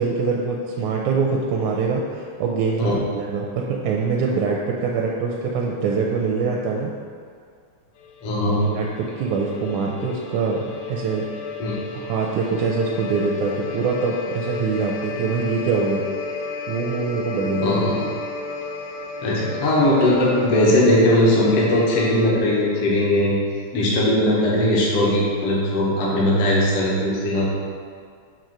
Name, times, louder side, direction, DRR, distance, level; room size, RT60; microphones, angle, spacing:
voice 1, 0.0-2.9 3.2-6.9 8.7-11.3 11.9-16.0 16.7-17.8, right 4 dB, 85° right, -1 dB, 1.9 m, -24 dB
sound 1, 8.0-22.3, left 4 dB, 85° left, 1.3 m, -33 dB
voice 2, 8.2-8.6 11.6-11.8 17.6-18.0 19.2-23.4 23.7-27.5, left 1 dB, 60° left, -5 dB, 1.9 m, -19 dB
7.2 x 2.8 x 5.9 m, 2.1 s
omnidirectional pair, 3.3 m